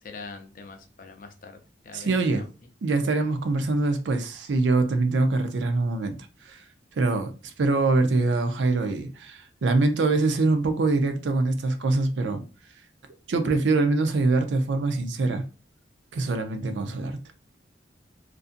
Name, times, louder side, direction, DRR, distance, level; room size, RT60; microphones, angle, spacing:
voice 1, 0.0-1.6 1.8-2.4, left 4 dB, 45° left, 0.5 m, -43 dB
voice 2, 1.9-2.4 2.8-6.2 6.4-6.6 7.0-12.4 13.3-15.4 16.1-17.2, right 3 dB, 75° right, 0.4 m, -24 dB
2.6 x 2.5 x 2.4 m
head